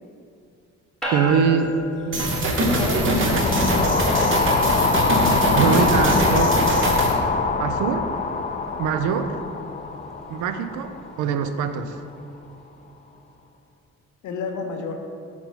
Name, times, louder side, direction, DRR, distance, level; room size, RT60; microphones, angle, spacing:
sound 1, 1.0-12.6, equal, ahead, 1.0 m, -38 dB
voice 1, 1.1-1.8 2.1-2.2 3.0-3.4 5.5-6.6 7.6-8.1 8.8-9.4 10.3-12.0, right 6 dB, 80° right, 9 dB, 0.5 m, -23 dB
sound 2, 2.1-7.1, right 1 dB, 40° right, 1.0 m, -22 dB
voice 2, 2.6-4.4 14.2-15.0, left 4 dB, 75° left, 4 dB, 0.7 m, -30 dB
sound 3, 3.0-11.2, left 4 dB, 25° left, 0.4 m, -23 dB
4.3 x 4.3 x 5.4 m, 2.4 s
cardioid pair, 90°, 30 cm